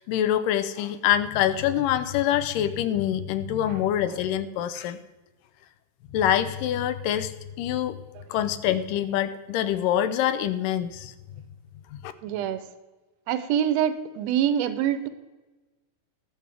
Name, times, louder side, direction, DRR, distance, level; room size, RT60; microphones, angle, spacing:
voice 1, 0.0-5.0 6.1-8.0 8.3-11.1 11.9-12.1, left 11 dB, 90° left, 12 dB, 2.4 m, -25 dB
voice 2, 12.2-12.6 13.3-15.1, right 10 dB, 75° right, 11 dB, 1.6 m, -25 dB
19.5 x 7.5 x 3.5 m, 1.2 s
omnidirectional pair, 3.8 m